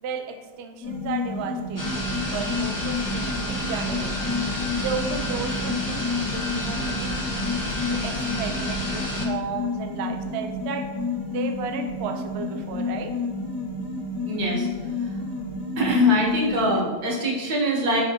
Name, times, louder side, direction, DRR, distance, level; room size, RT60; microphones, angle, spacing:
voice 1, 0.0-4.3 4.8-10.9 11.2-13.1, right 5 dB, 85° right, 5 dB, 0.5 m, -34 dB
sound 1, 0.8-16.8, left 3 dB, 80° left, 2.5 m, -30 dB
sound 2, 1.8-9.3, equal, 20° left, 0.5 m, -30 dB
voice 2, 14.2-14.7 15.0-15.1 15.8-18.0, left 1 dB, 70° right, -3 dB, 1.8 m, -22 dB
7.5 x 4.9 x 2.7 m, 1.4 s
omnidirectional pair, 1.8 m